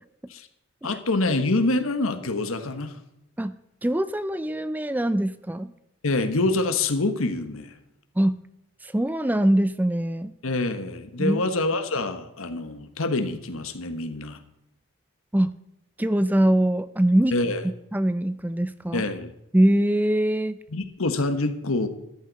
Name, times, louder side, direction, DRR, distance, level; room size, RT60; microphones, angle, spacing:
voice 1, 0.8-3.0 6.0-7.7 10.4-14.4 17.3-17.6 18.9-19.3 20.7-21.9, left 2 dB, 90° left, 9 dB, 1.3 m, -26 dB
voice 2, 3.8-5.7 8.2-8.4 8.8-10.3 11.2-11.4 15.3-15.6 16.0-17.3 17.6-19.0 19.5-20.6, right 1 dB, 10° right, 13 dB, 0.3 m, -23 dB
14.0 x 11.0 x 4.1 m, 0.86 s
head